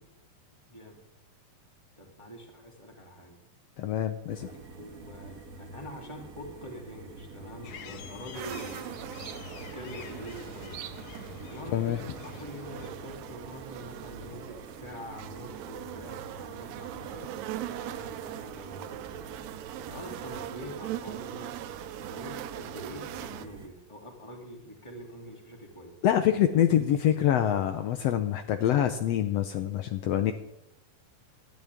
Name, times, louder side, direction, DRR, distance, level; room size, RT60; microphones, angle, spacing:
voice 1, 0.7-1.0 2.0-3.4 4.8-10.8 11.5-19.4 19.9-21.5 22.0-25.9, equal, 10° left, 1 dB, 2.4 m, -45 dB
voice 2, 3.8-4.5 11.7-12.0 26.0-30.3, left 10 dB, 85° left, 8 dB, 1.4 m, -25 dB
sound 1, 4.3-23.7, right 3 dB, 40° right, 1.2 m, -47 dB
sound 2, 7.6-12.9, left 8 dB, 65° left, 2.1 m, -47 dB
sound 3, 8.3-23.5, right 13 dB, 85° right, 1.6 m, -41 dB
18.5 x 12.5 x 3.6 m, 0.89 s
omnidirectional pair, 3.9 m